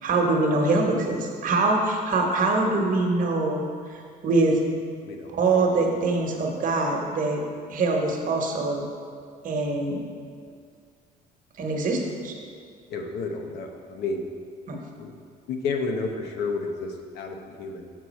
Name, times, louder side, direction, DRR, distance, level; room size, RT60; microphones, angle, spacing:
voice 1, 0.0-4.6 5.3-7.4 7.7-8.8 9.4-10.0 11.6-12.3 14.7-14.8, right 3 dB, 50° right, 1 dB, 1.1 m, -24 dB
voice 2, 12.9-14.3 15.0-15.1 15.5-17.9, left 4 dB, 75° left, 4 dB, 0.8 m, -31 dB
6.3 x 6.0 x 4.1 m, 2.1 s
cardioid pair, 110°, 17 cm